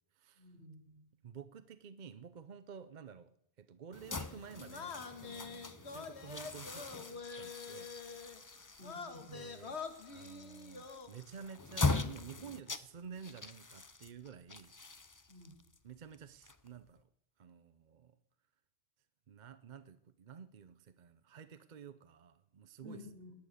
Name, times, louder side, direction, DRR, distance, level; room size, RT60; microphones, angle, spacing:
voice 1, 0.4-1.0 8.8-9.5 15.3-15.5 22.8-23.3, left 1 dB, 75° right, 1 dB, 5.3 m, -52 dB
voice 2, 1.2-3.3 3.6-7.9 9.3-9.8 10.1-14.7 15.8-17.1 17.4-18.2 19.3-23.1, right 7 dB, 50° right, 12 dB, 0.7 m, -51 dB
sound 1, 3.9-17.0, left 3 dB, 20° left, 0.6 m, -41 dB
sound 2, 4.1-8.4 8.8-11.1, left 5 dB, 85° left, 1.7 m, -46 dB
18.5 x 10.5 x 6.6 m, 0.72 s
omnidirectional pair, 1.1 m